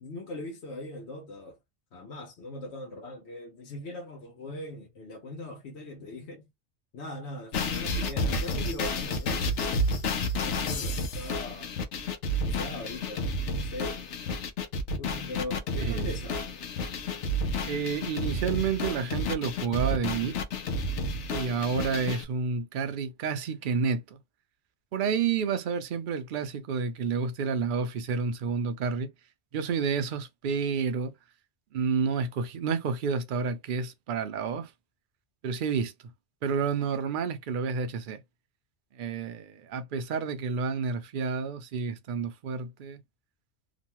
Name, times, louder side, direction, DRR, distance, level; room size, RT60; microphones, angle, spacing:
voice 1, 0.0-1.6 1.9-6.4 6.9-9.8 10.4-11.8 12.4-13.3 13.5-14.0 15.0-16.5, left 1 dB, 70° left, 1.0 m, -40 dB
sound 1, 7.5-22.2, left 1 dB, 90° left, 1.0 m, -31 dB
voice 2, 15.8-16.1 17.7-20.4 21.3-24.2 24.9-29.1 29.5-31.1 31.7-34.7 35.4-35.9 36.4-38.2 38.9-43.0, right 5 dB, 55° right, 0.6 m, -30 dB
3.0 x 2.2 x 2.9 m
omnidirectional pair, 1.2 m